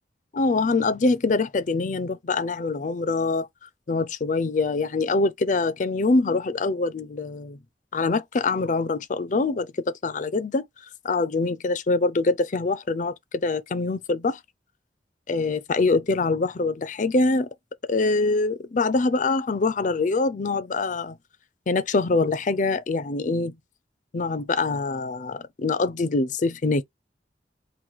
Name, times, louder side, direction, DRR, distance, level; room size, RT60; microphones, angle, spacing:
voice 1, 0.3-3.5 3.9-7.6 7.9-9.7 10.0-10.6 11.0-13.1 13.4-14.4 15.3-17.5 17.9-21.2 21.7-23.5 24.1-26.8, left 3 dB, 45° left, 0.5 m, -24 dB
3.0 x 2.6 x 4.0 m
head